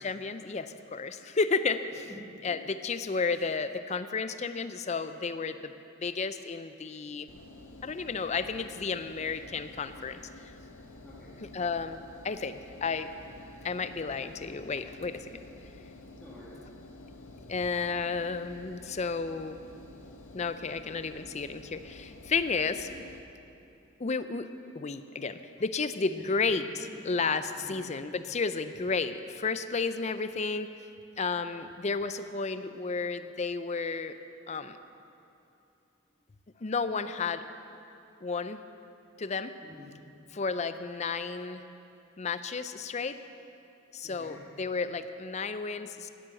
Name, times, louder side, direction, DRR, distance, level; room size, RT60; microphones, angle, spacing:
voice 1, 0.0-2.1 2.4-5.7 6.0-7.3 7.8-10.2 11.4-12.0 12.2-13.1 13.6-15.3 17.5-19.6 20.3-22.9 24.0-24.5 24.7-26.6 27.0-30.7 31.2-34.2 34.5-34.8 36.6-37.4 38.2-38.6 39.2-39.5 40.3-41.6 42.2-43.2 43.9-46.1, left 4 dB, 35° left, 11 dB, 0.5 m, -32 dB
Engine, 7.3-23.2, left 2 dB, 80° left, 1.1 m, -50 dB
voice 2, 11.0-11.4 16.2-16.6 26.2-26.5 26.8-27.0 27.6-27.8 32.4-32.6 39.6-39.9 44.0-44.5, left 1 dB, 5° left, -9 dB, 1.6 m, -49 dB
11.5 x 10.5 x 7.6 m, 2.7 s
head